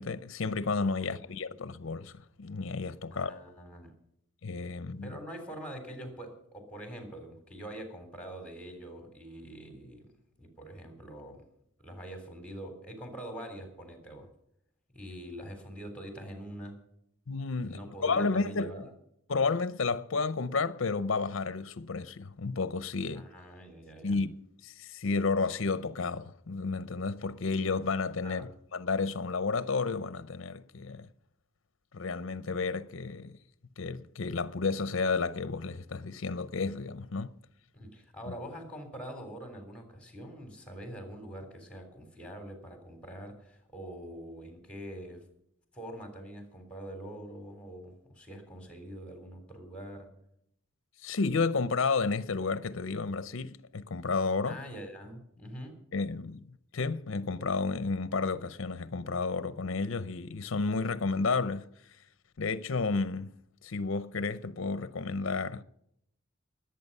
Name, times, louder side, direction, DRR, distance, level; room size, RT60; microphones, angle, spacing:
voice 1, 0.0-2.1 2.4-3.3 4.4-5.1 17.3-18.7 19.3-23.3 24.0-24.3 24.6-31.1 31.9-33.4 33.8-37.3 38.3-38.4 51.0-54.6 55.9-56.4 56.7-61.7 62.4-63.3 63.6-65.6, left 4 dB, 65° left, 0.6 m, -31 dB
voice 2, 3.1-3.9 5.0-10.1 10.4-11.4 11.8-14.3 14.9-16.8 17.6-18.9 23.1-24.2 28.2-28.5 37.7-45.2 45.7-50.1 54.4-55.8, right 1 dB, 5° left, 3.5 m, -44 dB
20.0 x 8.7 x 5.5 m
head